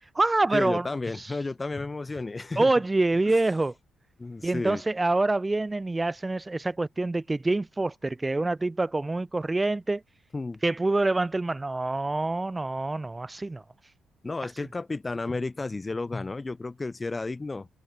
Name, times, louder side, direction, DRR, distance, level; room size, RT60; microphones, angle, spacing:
voice 1, 0.0-0.9 1.1-1.4 2.6-3.7 4.4-10.0 10.6-13.6, right 2 dB, 20° right, 1.1 m, -26 dB
voice 2, 0.5-2.7 4.2-4.8 10.3-10.6 14.2-17.7, left 3 dB, 20° left, 1.7 m, -32 dB
cardioid pair, 90°, 0 cm